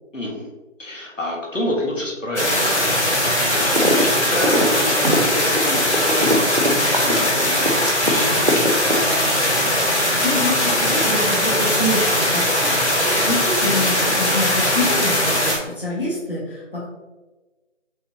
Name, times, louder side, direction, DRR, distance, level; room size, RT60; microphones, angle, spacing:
voice 1, 0.1-0.5 0.8-2.9 3.3-6.4 6.8-9.3, left 1 dB, 80° left, -2 dB, 1.4 m, -29 dB
sound 1, 2.4-15.6, left 1 dB, 60° left, 1.4 m, -20 dB
sound 2, 3.8-4.1 4.3-8.1 8.5-9.4, left 1 dB, 45° right, 0.5 m, -21 dB
voice 2, 9.9-16.8, left 1 dB, 45° left, -5 dB, 1.3 m, -26 dB
5.5 x 3.4 x 2.8 m, 1.2 s
figure-of-eight pair, 175°, 38 cm